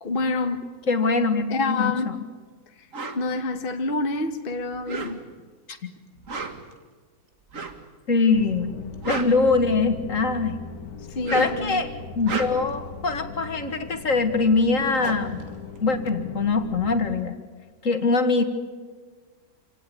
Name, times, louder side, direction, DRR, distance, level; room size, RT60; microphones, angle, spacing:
voice 1, 0.0-0.7 1.5-2.1 2.8-2.9 3.1-5.2 11.1-11.8, left 3 dB, 40° left, 1.4 m, -27 dB
voice 2, 0.9-2.2 5.7-5.9 8.1-8.7 9.0-10.6 11.3-15.4 15.8-17.3 17.8-18.4, left 4 dB, 60° left, 2.2 m, -23 dB
sound 1, 2.9-3.2 4.7-5.5 6.1-6.7 7.5-7.9 8.8-10.1 11.1-11.7 12.1-12.8 14.3-14.4 14.7-16.4, right 4 dB, 60° right, 2.2 m, -34 dB
sound 2, 8.3-17.2, left 4 dB, 80° left, 1.8 m, -39 dB
27.0 x 17.5 x 9.5 m
omnidirectional pair, 1.6 m